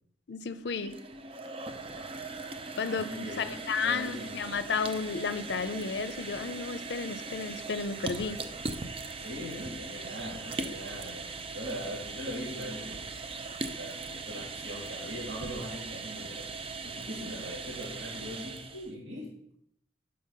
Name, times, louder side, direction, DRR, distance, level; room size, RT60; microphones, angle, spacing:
voice 1, 0.3-0.9 2.8-8.4, left 5 dB, 65° left, 0.5 m, -33 dB
sound 1, 0.7-18.9, right 3 dB, 30° right, 0.6 m, -40 dB
voice 2, 2.9-4.5 9.1-13.1 13.8-16.5 16.8-19.5, equal, 75° right, 2.9 m, -41 dB
5.6 x 5.6 x 6.5 m
head